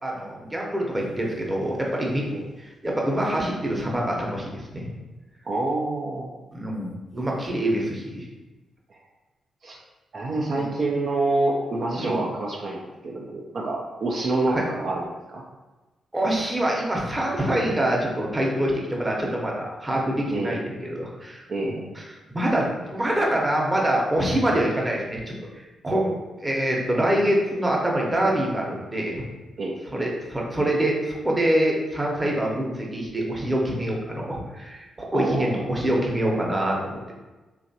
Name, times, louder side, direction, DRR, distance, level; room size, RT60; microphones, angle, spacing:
voice 1, 0.0-2.3 2.6-4.9 6.5-8.2 10.5-10.7 12.0-12.2 14.5-14.6 16.1-22.0 22.3-25.2 25.5-26.1 26.4-29.2 29.9-36.9, right 1 dB, 20° right, -2 dB, 0.8 m, -25 dB
voice 2, 5.4-6.3 8.9-9.0 9.6-9.8 10.1-15.0 15.3-15.4 20.3-20.6 21.5-21.7 29.6-29.8 35.1-35.6, right 2 dB, 60° right, -2 dB, 0.4 m, -27 dB
3.0 x 2.4 x 2.7 m, 1.2 s
hypercardioid pair, 45°, 0 cm